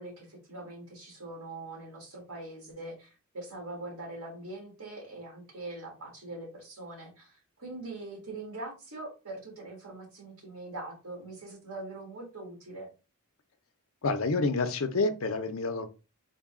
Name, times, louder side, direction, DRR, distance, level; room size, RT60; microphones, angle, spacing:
voice 1, 0.0-12.9, right 2 dB, 80° right, -1 dB, 1.9 m, -42 dB
voice 2, 14.0-15.9, left 3 dB, 65° left, 9 dB, 0.5 m, -28 dB
3.9 x 2.2 x 3.6 m, 0.31 s
head